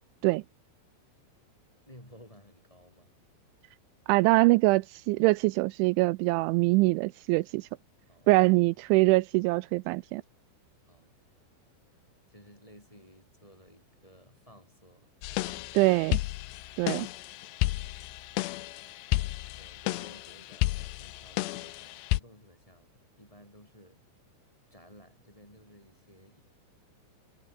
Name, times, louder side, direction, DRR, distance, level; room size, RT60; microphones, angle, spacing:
voice 1, 1.9-3.1 8.1-8.4 10.8-11.2 12.3-16.3 17.5-18.0 19.2-24.0 24.7-26.4, equal, 5° left, 6.3 m, -56 dB
voice 2, 4.1-7.7 8.3-10.2 15.8-16.2 16.8-17.1, right 22 dB, 85° right, 3.0 m, -23 dB
sound 1, 15.2-22.2, left 18 dB, 75° left, 2.7 m, -32 dB
omnidirectional pair, 5.4 m